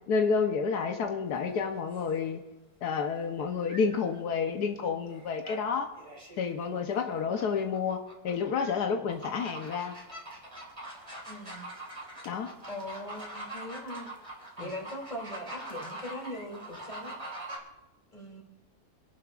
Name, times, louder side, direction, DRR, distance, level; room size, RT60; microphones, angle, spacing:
voice 1, 0.1-2.4 2.8-5.9 6.4-8.0 8.2-9.9 12.2-12.5 14.6-14.7, left 5 dB, 85° left, 5 dB, 1.4 m, -30 dB
sound 1, 1.9-2.2 3.7-4.2 5.1-5.6 5.9-8.8 9.1-17.6, right 1 dB, 20° right, 2.7 m, -43 dB
voice 2, 11.3-11.7 12.7-14.1 14.6-17.2 18.1-18.4, left 1 dB, 25° left, 0 dB, 2.8 m, -40 dB
28.5 x 11.5 x 2.4 m, 1.0 s
omnidirectional pair, 1.7 m